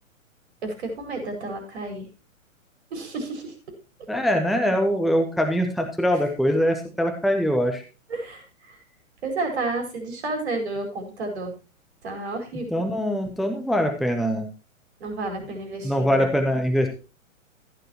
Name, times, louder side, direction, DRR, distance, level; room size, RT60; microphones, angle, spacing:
voice 1, 0.6-2.1 2.9-3.5 8.1-8.8 9.2-11.5 12.0-12.9 15.0-16.3, right 2 dB, 50° right, 4 dB, 4.8 m, -31 dB
voice 2, 4.1-7.8 12.7-14.5 15.8-16.9, equal, ahead, 4 dB, 0.7 m, -23 dB
15.0 x 9.2 x 2.9 m, 0.32 s
figure-of-eight pair, 115°, 41 cm